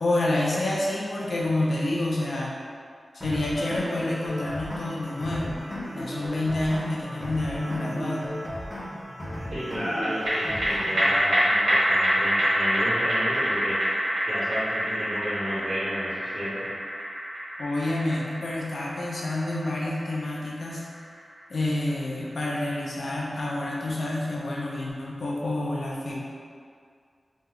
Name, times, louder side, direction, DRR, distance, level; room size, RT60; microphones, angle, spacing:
voice 1, 0.0-2.5 3.1-5.6 6.0-8.3 17.6-20.8 21.5-26.2, left 1 dB, 70° left, -4 dB, 0.5 m, -28 dB
sound 1, 3.2-11.2, equal, 15° left, 0.6 m, -35 dB
voice 2, 9.5-13.8 14.3-16.7, equal, 65° right, -11 dB, 1.3 m, -32 dB
sound 2, 10.0-22.7 23.0-23.1, equal, 90° right, 0.8 m, -26 dB
2.7 x 2.2 x 3.6 m, 2.2 s
wide cardioid pair, 110°, 0 cm